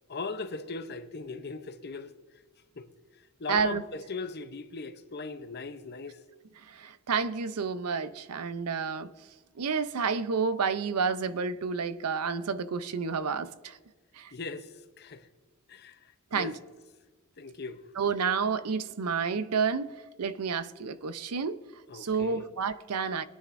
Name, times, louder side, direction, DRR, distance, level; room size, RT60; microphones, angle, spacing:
voice 1, 0.1-2.1 2.8-2.9 3.4-6.2 14.3-15.3 15.7-16.5 17.4-17.8 21.9-22.5, left 3 dB, 45° left, 0.7 m, -39 dB
voice 2, 3.5-3.8 6.7-9.1 9.6-13.8 14.2-14.3 16.3-16.5 18.0-21.6 21.9-23.2, right 5 dB, 90° right, 0.6 m, -30 dB
21.0 x 9.8 x 2.6 m
head